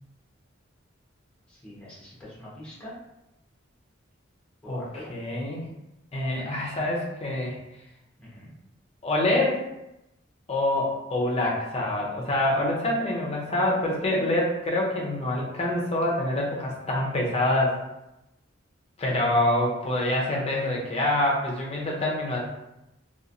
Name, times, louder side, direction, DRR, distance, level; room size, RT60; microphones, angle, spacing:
voice 1, 1.6-3.0 4.6-5.1 8.2-8.5, left 1 dB, 5° left, -9 dB, 0.9 m, -43 dB
voice 2, 5.1-5.6 6.1-7.5 9.0-9.6 10.5-17.8 19.0-22.4, left 1 dB, 30° left, -3 dB, 0.6 m, -26 dB
3.0 x 2.3 x 2.5 m, 0.91 s
head